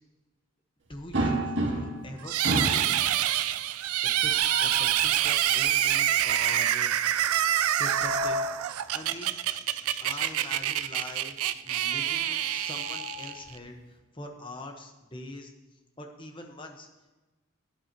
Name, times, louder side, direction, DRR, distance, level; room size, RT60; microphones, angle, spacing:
voice 1, 0.9-2.8 4.0-4.3 4.6-7.2 7.8-8.4 8.9-9.3 10.0-15.5 16.0-16.9, left 1 dB, 20° left, 3 dB, 1.2 m, -43 dB
sound 1, 1.1-2.1 2.4-2.9 4.1-4.9 7.6-8.6 10.0-10.2 10.6-10.7 12.2-13.4, right 1 dB, 55° right, 1.9 m, -31 dB
sound 2, 2.3-13.6, right 11 dB, 85° right, 0.4 m, -27 dB
16.5 x 11.0 x 3.0 m, 1.2 s
head